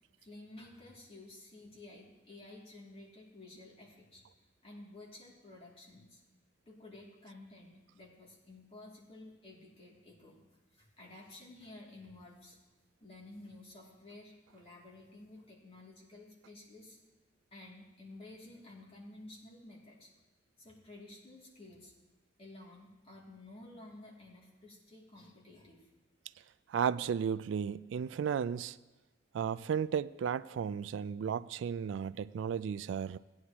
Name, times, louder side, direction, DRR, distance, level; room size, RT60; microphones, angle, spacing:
voice 1, 0.2-4.2 4.6-6.2 6.7-10.4 10.7-12.6 13.0-17.0 17.5-20.1 20.6-21.9 22.4-25.9, left 2 dB, 35° left, 2.6 m, -53 dB
voice 2, 26.7-28.8 29.3-33.2, right 7 dB, 75° right, 0.3 m, -34 dB
16.0 x 9.6 x 3.0 m
head